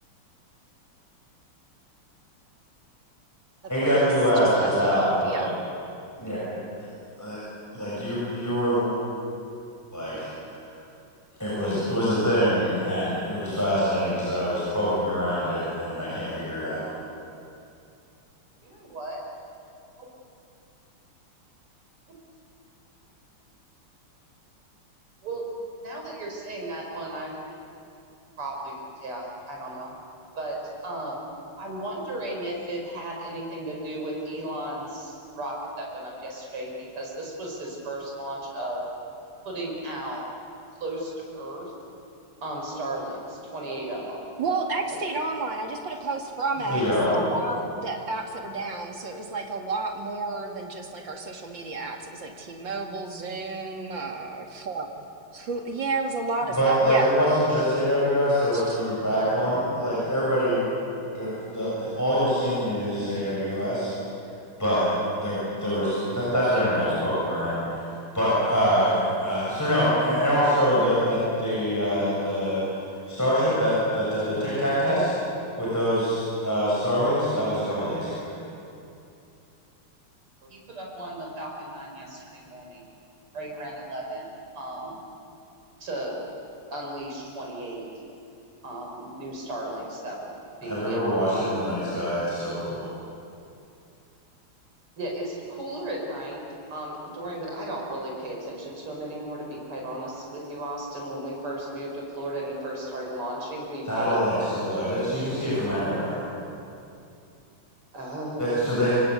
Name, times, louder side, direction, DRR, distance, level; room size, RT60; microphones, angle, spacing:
voice 1, 3.7-5.5 6.2-6.8 7.2-7.4 7.7-8.9 9.9-10.6 11.4-16.9 46.6-47.3 56.6-60.6 61.1-63.9 64.6-64.9 65.1-72.6 73.1-75.1 75.6-78.3 90.6-92.9 103.9-106.2 108.4-108.9, equal, 5° left, -8 dB, 6.9 m, -25 dB
voice 2, 4.4-5.5 44.4-46.8 47.1-54.9 55.3-57.1 58.5-58.8 59.5-59.8, right 3 dB, 60° right, 3 dB, 3.0 m, -31 dB
voice 3, 18.7-19.2 20.0-20.1 25.2-25.4 25.8-27.3 28.4-29.9 30.4-30.6 30.8-31.2 31.6-36.7 36.9-38.8 39.4-40.2 40.8-41.7 42.4-44.2 80.4-82.8 83.3-84.3 84.5-85.0 85.8-86.1 86.7-87.8 88.6-90.3 90.6-91.1 95.0-96.4 96.7-104.2 104.6-104.7 107.9-108.5, right 1 dB, 80° right, -2 dB, 6.2 m, -35 dB
26.5 x 24.0 x 8.2 m, 2.6 s
omnidirectional pair, 2.4 m